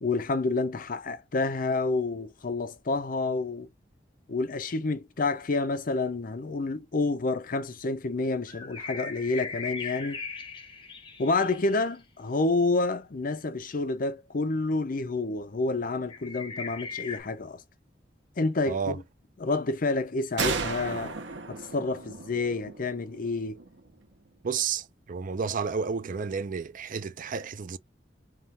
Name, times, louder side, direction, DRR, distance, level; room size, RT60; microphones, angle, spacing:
voice 1, 0.0-3.7 4.3-10.2 11.2-17.6 18.4-19.0 19.4-21.2 21.5-23.6, left 3 dB, 50° left, 0.6 m, -29 dB
sound 1, 8.5-11.8 16.1-17.2, left 4 dB, 30° left, 1.1 m, -39 dB
voice 2, 18.7-19.0 24.4-27.8, right 5 dB, 45° right, 0.4 m, -31 dB
sound 2, 20.4-23.9, right 4 dB, 75° right, 0.9 m, -34 dB
3.6 x 2.4 x 4.2 m
head